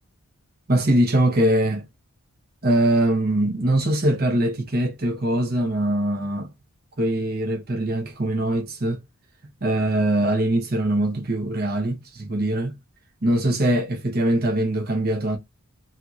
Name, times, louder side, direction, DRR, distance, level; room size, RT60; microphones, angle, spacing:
voice 1, 0.7-1.9 2.6-6.5 7.0-9.0 9.6-12.7 13.2-15.4, right 1 dB, 45° right, 1.0 m, -22 dB
3.4 x 2.8 x 2.4 m
head